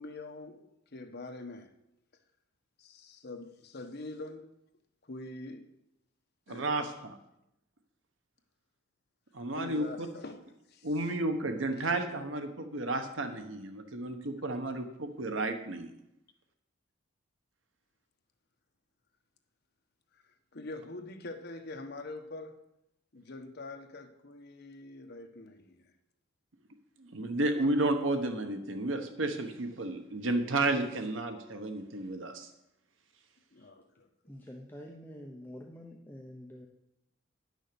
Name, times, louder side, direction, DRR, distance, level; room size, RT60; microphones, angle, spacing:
voice 1, 0.0-1.7 2.8-4.5 5.0-5.7 6.5-6.9 9.6-10.4 10.7-11.1 11.6-11.9 20.5-22.6 23.1-25.9 33.5-34.1, left 2 dB, 55° left, 1.1 m, -44 dB
voice 2, 6.5-7.2 9.3-10.1 10.8-15.9 27.0-32.5, right 2 dB, 75° right, 1.1 m, -32 dB
voice 3, 34.3-36.7, equal, 10° left, 0.8 m, -47 dB
10.5 x 6.3 x 6.9 m
head